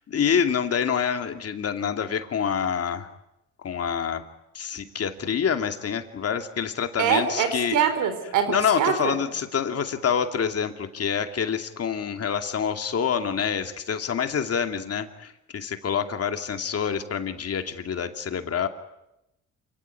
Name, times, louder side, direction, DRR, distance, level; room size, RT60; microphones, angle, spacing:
voice 1, 0.1-3.1 3.6-4.2 4.5-7.8 8.5-18.7, left 7 dB, 50° left, 6 dB, 2.6 m, -27 dB
voice 2, 7.0-9.2, right 8 dB, 85° right, 9 dB, 4.5 m, -24 dB
28.0 x 17.5 x 9.8 m, 0.89 s
cardioid pair, 90°, 30 cm